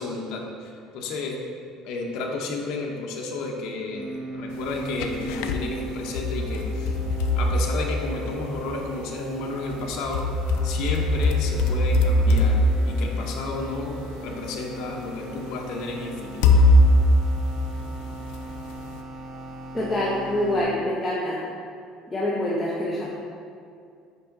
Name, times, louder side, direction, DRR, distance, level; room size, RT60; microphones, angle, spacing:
voice 1, 0.0-1.4 1.8-6.9 7.4-10.2 10.6-14.0 14.2-16.6, left 3 dB, 65° left, 0 dB, 0.8 m, -32 dB
sound 1, 3.9-20.6, right 2 dB, 45° right, 0.9 m, -39 dB
sound 2, 4.7-5.6 6.2-8.5 9.7-14.1 15.0-15.1 16.4-18.3, left 1 dB, 85° left, 0.4 m, -21 dB
voice 2, 19.7-21.4 22.1-23.1, left 1 dB, 10° left, -7 dB, 0.8 m, -25 dB
5.6 x 5.5 x 3.8 m, 2.3 s
cardioid pair, 150°, 0 cm